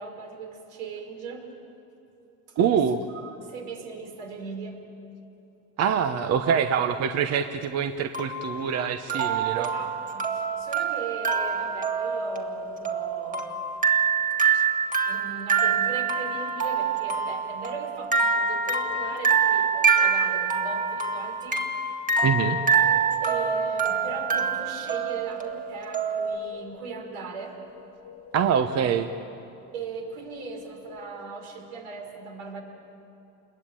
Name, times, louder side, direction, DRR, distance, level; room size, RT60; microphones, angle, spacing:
voice 1, 0.0-1.5 2.5-4.9 9.1-13.5 15.1-21.7 22.0-22.1 23.2-27.6 29.7-32.6, right 4 dB, 80° right, 2 dB, 5.3 m, -38 dB
voice 2, 2.6-3.0 5.8-9.7 22.2-22.6 28.3-29.1, right 7 dB, 40° right, 8 dB, 1.0 m, -24 dB
sound 1, 6.4-6.9 8.1-26.4, right 6 dB, 20° right, 2.0 m, -26 dB
sound 2, 18.5-19.3 19.8-20.7 22.3-23.3 23.6-24.7 26.1-27.2 27.6-28.6 30.2-31.2, left 6 dB, 75° left, 1.6 m, -47 dB
28.5 x 21.5 x 9.1 m, 2.8 s
supercardioid pair, 115°, 39 cm